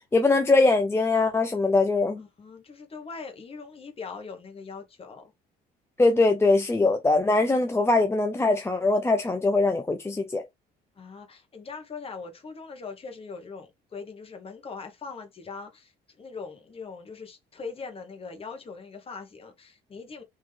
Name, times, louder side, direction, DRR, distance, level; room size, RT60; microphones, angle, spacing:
voice 1, 0.1-2.2 6.0-10.4, left 3 dB, 15° left, 0.5 m, -22 dB
voice 2, 2.2-5.3 11.0-20.2, left 4 dB, 35° left, 1.5 m, -41 dB
3.8 x 3.1 x 3.4 m
cardioid pair, 110°, 17 cm